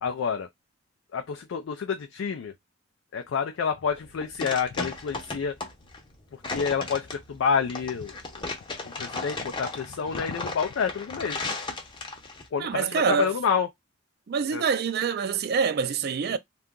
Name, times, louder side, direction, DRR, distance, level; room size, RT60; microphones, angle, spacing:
voice 1, 0.0-0.5 1.1-2.5 3.1-5.6 6.3-8.5 8.8-11.6 12.5-13.7 14.5-14.6, left 6 dB, 80° left, 0.4 m, -29 dB
sound 1, 3.9-12.5, left 3 dB, 25° left, 0.7 m, -35 dB
voice 2, 12.6-13.3 14.3-16.4, right 6 dB, 55° right, 0.4 m, -26 dB
2.7 x 2.4 x 3.6 m
head